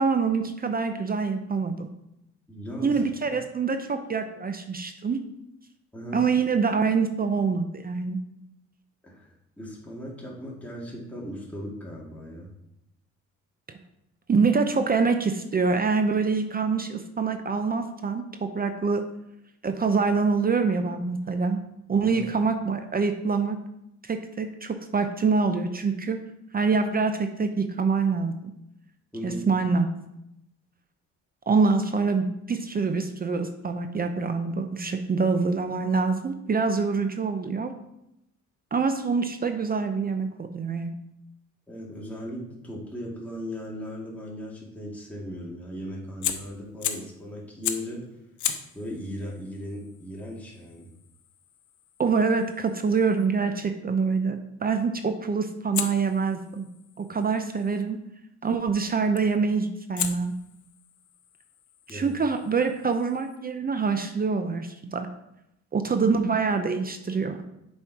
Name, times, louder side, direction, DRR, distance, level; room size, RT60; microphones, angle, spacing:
voice 1, 0.0-1.9 2.8-5.2 6.1-8.2 14.3-19.1 19.6-21.6 21.9-23.6 24.1-26.2 26.5-28.3 29.2-29.9 31.5-37.7 38.7-40.9 52.0-56.7 57.0-58.0 58.4-60.3 61.9-65.1 65.7-67.4, right 4 dB, 30° right, 7 dB, 0.6 m, -25 dB
voice 2, 2.5-3.0 5.9-6.2 9.0-12.5 22.0-22.3 29.1-29.5 41.7-48.1 48.7-50.9 61.9-62.1, equal, 5° left, -4 dB, 2.0 m, -37 dB
Fire, 46.2-47.2 47.6-48.0 48.4-53.3 55.7-57.8 59.2-59.5 60.0-63.4, left 10 dB, 75° left, 0.7 m, -37 dB
7.2 x 4.4 x 4.6 m, 0.84 s
cardioid pair, 90°, 30 cm